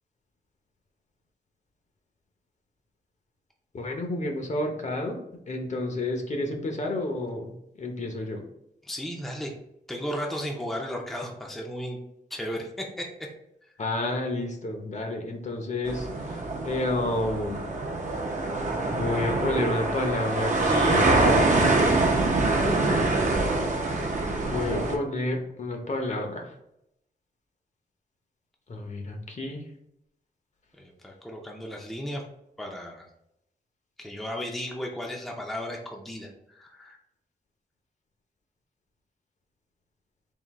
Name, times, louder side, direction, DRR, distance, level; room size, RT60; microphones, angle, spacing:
voice 1, 3.7-5.2 5.5-7.5 7.8-8.4 13.8-16.1 16.6-17.6 18.9-21.1 24.4-26.4 28.7-29.6, left 2 dB, 45° left, 2 dB, 0.8 m, -30 dB
voice 2, 8.8-9.5 9.9-12.0 12.3-13.3 30.8-32.2 32.6-33.1 34.0-37.0, equal, ahead, 0 dB, 0.5 m, -35 dB
sound 1, 15.8-25.0, right 2 dB, 50° right, 0.7 m, -24 dB
3.8 x 2.7 x 4.1 m, 0.81 s
wide cardioid pair, 135°, 17 cm